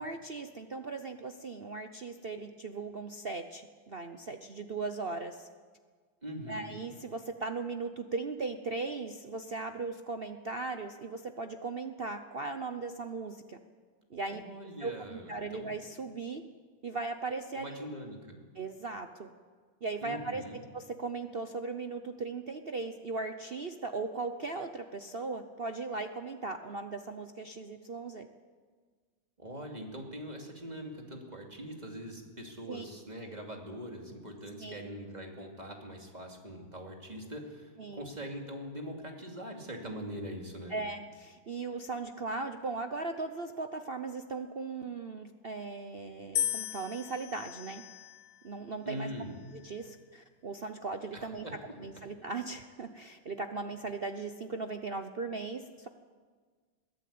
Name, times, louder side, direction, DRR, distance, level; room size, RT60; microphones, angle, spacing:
voice 1, 0.0-5.5 6.5-13.6 14.1-14.4 14.8-16.4 16.8-17.9 18.5-19.3 19.8-28.3 32.7-32.8 34.6-35.0 37.8-38.1 40.7-47.8 48.4-49.1 49.5-51.5 51.8-55.9, right 3 dB, 60° right, 7 dB, 0.6 m, -38 dB
voice 2, 6.2-6.7 14.3-15.7 17.5-18.4 20.0-20.6 29.4-40.7 48.8-49.3 51.1-51.7, equal, 20° right, 1 dB, 2.8 m, -42 dB
sound 1, 46.4-48.6 49.4-49.9, left 10 dB, 70° left, 1.4 m, -37 dB
22.0 x 15.5 x 8.6 m, 1.6 s
omnidirectional pair, 2.2 m